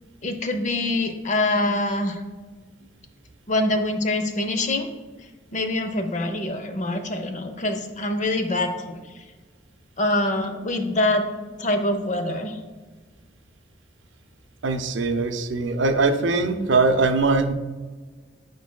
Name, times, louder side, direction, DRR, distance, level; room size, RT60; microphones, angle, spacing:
voice 1, 0.2-2.2 3.5-4.9 5.5-9.0 10.0-11.2 11.6-12.6, left 2 dB, 40° left, 7 dB, 0.6 m, -24 dB
voice 2, 14.6-17.5, right 3 dB, 80° right, 8 dB, 0.5 m, -21 dB
9.1 x 4.7 x 2.2 m, 1.4 s
head